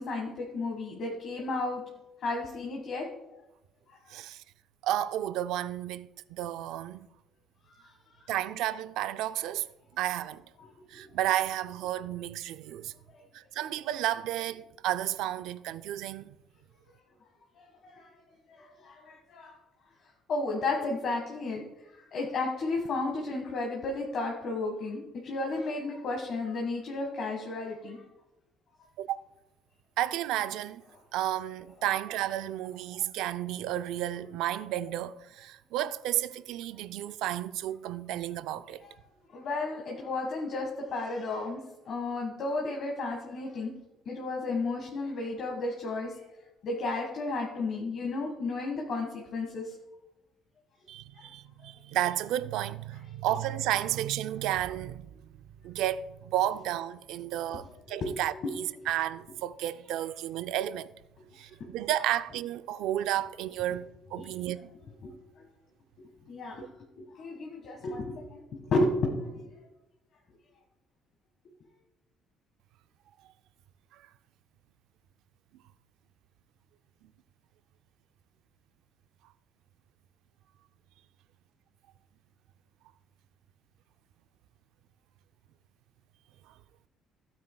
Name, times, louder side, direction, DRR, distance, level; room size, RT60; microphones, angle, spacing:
voice 1, 0.0-1.8 2.2-3.1 7.7-8.1 10.6-10.7 11.0-11.1 13.1-13.2 17.6-18.1 18.5-19.6 20.3-21.6 21.9-28.0 38.8-39.0 39.3-43.7 44.0-46.2 46.6-49.7 51.2-51.3 58.0-58.1 58.4-58.5 64.2-64.3 65.0-65.1 66.3-66.7 67.0-69.5, left 2 dB, 40° left, 1.6 m, -33 dB
voice 2, 4.1-4.4 4.8-7.1 8.3-9.7 10.0-10.4 10.9-12.9 13.3-16.3 29.0-29.2 30.0-30.8 31.1-38.8 50.9-55.1 55.6-60.9 61.4-64.7 86.5-86.6, right 13 dB, 70° right, 0.4 m, -32 dB
16.0 x 8.9 x 2.3 m
cardioid pair, 175°, 0 cm